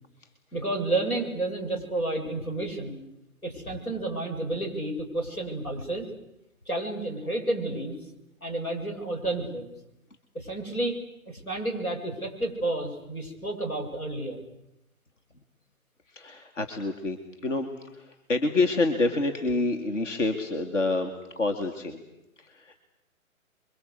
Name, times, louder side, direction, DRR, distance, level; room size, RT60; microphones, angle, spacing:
voice 1, 0.5-3.0 3.4-6.1 6.7-7.9 8.4-9.7 10.3-11.0 11.3-14.4, right 2 dB, 85° left, 3 dB, 7.7 m, -31 dB
voice 2, 16.1-22.0 22.4-22.8, left 2 dB, 60° left, 5 dB, 2.8 m, -28 dB
29.0 x 24.0 x 8.4 m, 0.86 s
figure-of-eight pair, 140°, 42 cm